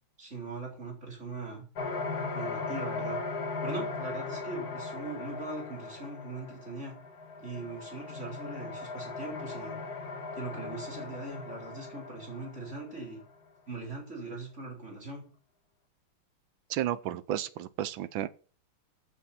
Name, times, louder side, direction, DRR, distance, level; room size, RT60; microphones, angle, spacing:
voice 1, 0.2-1.6 2.3-3.2 3.6-7.0 7.4-9.7 10.3-13.2 13.7-15.3, right 3 dB, 30° right, 4.4 m, -40 dB
sound 1, 1.7-13.2, left 4 dB, 50° left, 1.8 m, -38 dB
voice 2, 16.7-18.3, right 12 dB, 70° right, 1.4 m, -32 dB
14.5 x 7.3 x 4.4 m
omnidirectional pair, 2.4 m